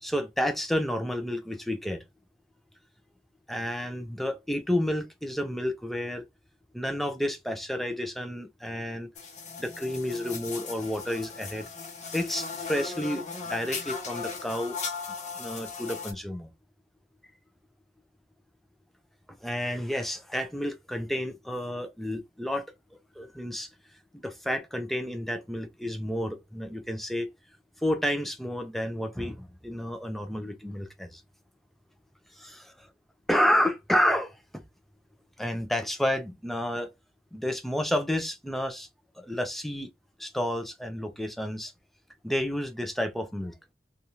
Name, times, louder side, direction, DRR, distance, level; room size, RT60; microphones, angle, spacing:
voice 1, 0.0-2.0 3.5-6.2 6.7-9.1 9.6-11.7 12.1-14.8 15.4-16.5 19.4-22.6 23.2-23.7 24.1-27.3 27.8-31.2 32.4-32.7 33.3-34.6 35.4-36.9 37.3-38.9 39.2-39.9 40.2-41.7 42.2-43.5, equal, ahead, 0.4 m, -30 dB
sound 1, 9.1-16.1, left 5 dB, 45° left, 0.8 m, -37 dB
2.8 x 2.3 x 2.7 m
head